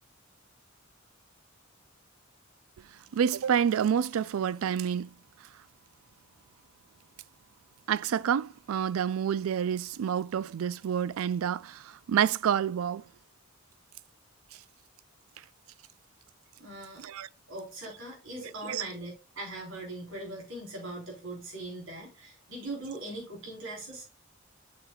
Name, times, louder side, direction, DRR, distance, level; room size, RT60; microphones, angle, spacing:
voice 1, 3.1-5.1 7.9-13.0 17.0-17.3 18.7-18.8, right 8 dB, 90° right, 0.4 m, -28 dB
voice 2, 16.6-17.0 17.5-24.0, right 2 dB, 70° right, 4.0 m, -40 dB
7.8 x 6.5 x 2.3 m
head